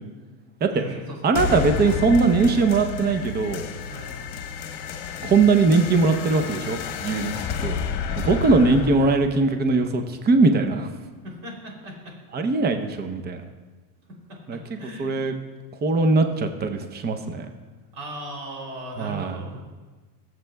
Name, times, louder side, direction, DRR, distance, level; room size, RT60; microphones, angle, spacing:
voice 1, 0.7-1.5 3.9-4.2 8.0-8.5 11.2-12.2 14.3-15.2 17.9-19.6, right 1 dB, 50° right, -1 dB, 3.2 m, -38 dB
voice 2, 1.2-3.6 5.2-7.3 7.6-7.8 8.2-10.9 12.3-13.4 14.5-14.6 15.0-15.3 15.8-17.5 19.0-19.4, right 3 dB, 20° right, 7 dB, 0.7 m, -20 dB
sound 1, 1.3-10.4, left 6 dB, 55° left, 1.0 m, -31 dB
16.5 x 7.6 x 2.3 m, 1.4 s
supercardioid pair, 115°, 46 cm